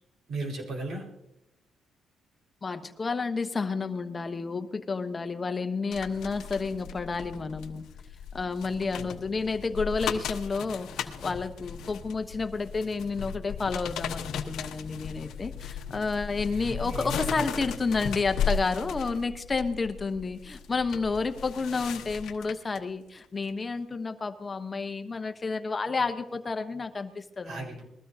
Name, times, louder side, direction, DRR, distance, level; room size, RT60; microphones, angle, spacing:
voice 1, 0.3-1.0 9.0-9.2 16.5-17.5 27.4-27.8, right 2 dB, 70° right, -1 dB, 4.7 m, -36 dB
voice 2, 2.6-7.9 8.3-27.8, left 4 dB, 30° left, 8 dB, 1.0 m, -30 dB
sound 1, 5.9-22.8 23.2-23.4, left 7 dB, 80° left, 1.1 m, -36 dB
21.0 x 15.0 x 2.8 m, 0.86 s
cardioid pair, 90°, 0 cm